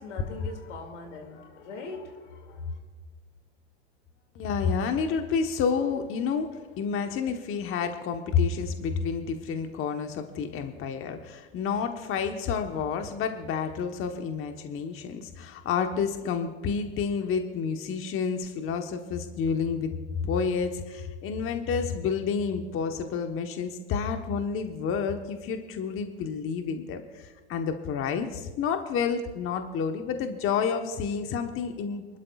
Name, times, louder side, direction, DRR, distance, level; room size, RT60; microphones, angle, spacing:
voice 1, 0.0-2.7, left 4 dB, 85° left, 4 dB, 2.5 m, -40 dB
voice 2, 4.3-6.5 6.8-19.9 20.2-32.2, left 6 dB, 40° left, 5 dB, 1.1 m, -29 dB
27.0 x 12.0 x 2.4 m, 1.4 s
hypercardioid pair, 110°, 34 cm